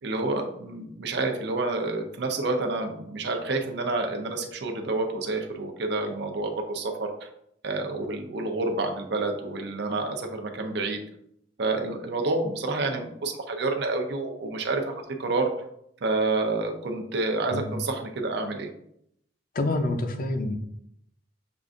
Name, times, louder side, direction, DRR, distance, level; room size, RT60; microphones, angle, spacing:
voice 1, 0.0-7.3 7.6-11.0 11.6-14.9 15.2-15.5 16.0-18.7, right 3 dB, 65° right, 3 dB, 0.6 m, -28 dB
voice 2, 19.5-20.6, left 2 dB, 50° left, 6 dB, 0.5 m, -27 dB
6.7 x 2.5 x 2.5 m, 0.73 s
head